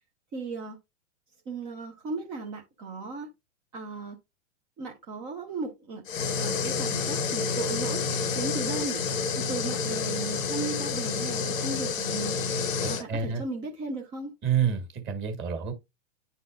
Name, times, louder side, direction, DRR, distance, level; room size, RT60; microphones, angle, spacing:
voice 1, 0.3-0.8 1.5-3.3 3.7-4.2 4.8-6.0 6.4-8.0 8.3-9.0 9.4-12.3 12.9-14.3, right 3 dB, 15° right, 0.3 m, -36 dB
sound 1, 6.1-13.0, left 5 dB, 90° left, 0.8 m, -29 dB
voice 2, 12.8-13.4 14.4-15.7, right 7 dB, 30° right, 1.7 m, -28 dB
10.0 x 4.1 x 2.4 m
hypercardioid pair, 125°, 39 cm